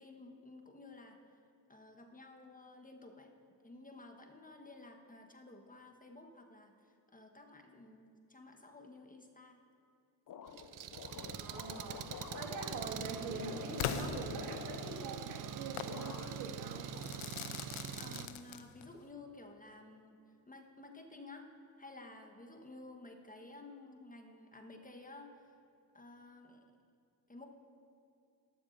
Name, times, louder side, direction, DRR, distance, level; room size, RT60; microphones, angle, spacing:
voice 1, 0.0-1.4 1.7-3.3 3.6-9.6 17.9-20.2 20.5-21.5 21.8-25.6 25.9-26.6 27.3-27.5, left 2 dB, 15° left, 4 dB, 1.3 m, -53 dB
sound 1, 10.3-15.5 15.8-16.6 16.9-17.8, left 7 dB, 40° left, 0.8 m, -49 dB
Engine, 10.5-18.3, right 8 dB, 40° right, 0.7 m, -44 dB
voice 2, 11.3-16.9, right 3 dB, 75° right, -1 dB, 2.1 m, -44 dB
Crackle / Fireworks, 13.8-14.9 15.8-16.0 17.0-19.0, left 9 dB, 75° left, 0.8 m, -40 dB
13.0 x 12.0 x 2.7 m, 2.5 s
hypercardioid pair, 60°, 50 cm